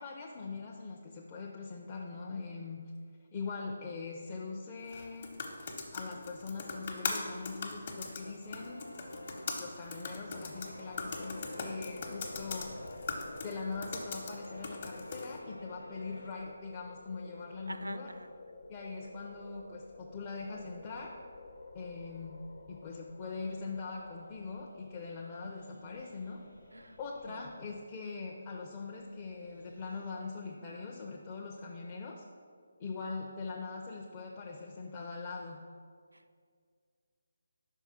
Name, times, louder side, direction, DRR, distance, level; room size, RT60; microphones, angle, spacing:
voice 1, 0.0-2.8 3.3-5.4 5.9-8.8 9.5-12.7 13.4-18.1 18.7-21.1 21.7-22.4 22.7-26.4 27.0-32.2 32.8-35.6, left 4 dB, 25° left, -2 dB, 0.5 m, -42 dB
sound 1, 4.8-15.4, left 4 dB, 45° left, 1.0 m, -41 dB
voice 2, 8.0-8.4 17.7-18.3 26.7-27.0, right 2 dB, 80° right, 11 dB, 0.4 m, -45 dB
sound 2, 8.5-16.3, left 1 dB, 85° left, 0.4 m, -49 dB
sound 3, 10.9-30.1, left 3 dB, 65° left, 1.1 m, -52 dB
5.7 x 4.5 x 5.7 m, 2.1 s
figure-of-eight pair, 150°, 0 cm